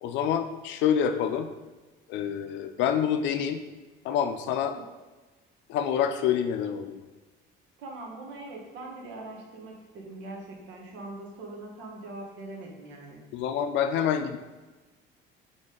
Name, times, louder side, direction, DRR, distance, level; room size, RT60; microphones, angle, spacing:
voice 1, 0.0-1.5 2.1-3.6 4.0-4.8 5.7-7.0 13.3-14.4, left 8 dB, 70° left, 7 dB, 0.5 m, -27 dB
voice 2, 7.8-13.2, right 2 dB, 75° right, 0 dB, 1.2 m, -42 dB
4.1 x 3.4 x 3.8 m, 1.2 s
cardioid pair, 155°, 20 cm